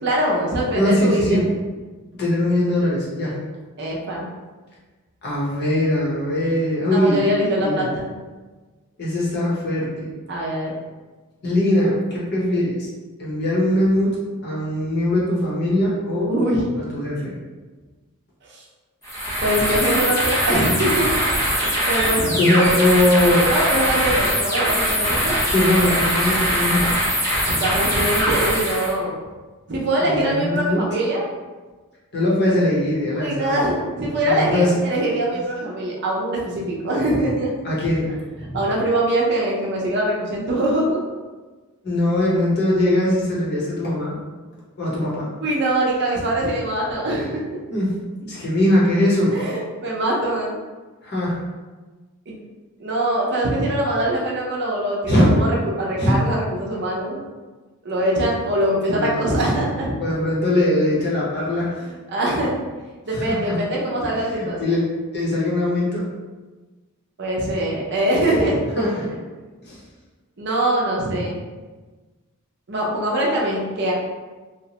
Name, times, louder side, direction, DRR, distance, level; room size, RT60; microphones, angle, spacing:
voice 1, 0.0-1.5 3.8-4.3 6.9-8.1 10.3-10.7 16.1-16.6 18.4-18.6 19.4-21.1 21.9-22.4 23.5-25.3 27.5-29.1 29.7-31.3 33.1-37.5 38.5-41.0 45.4-47.6 49.3-50.5 52.3-52.4 52.8-55.5 55.8-57.2 57.8-59.9 61.8-62.6 63.1-64.7 67.2-68.9 70.4-71.4 72.7-73.9, right 1 dB, 50° right, -3 dB, 0.6 m, -23 dB
voice 2, 0.7-1.5 2.2-3.4 5.2-7.2 7.6-7.9 9.0-10.1 11.4-12.9 13.2-16.3 16.8-17.3 22.2-23.5 25.5-27.0 30.0-30.8 32.1-33.6 34.2-34.7 37.6-38.1 38.5-38.6 41.8-44.2 44.8-45.3 47.7-49.4 51.0-51.4 55.1-55.4 56.0-56.2 58.9-59.2 60.0-61.8 63.1-63.6 64.3-64.8 65.1-66.0 68.8-69.1 69.6-69.8, left 1 dB, 50° left, -6 dB, 0.8 m, -21 dB
sound 1, 19.0-28.9, equal, 15° left, 0.8 m, -22 dB
2.8 x 2.0 x 2.8 m, 1.3 s
head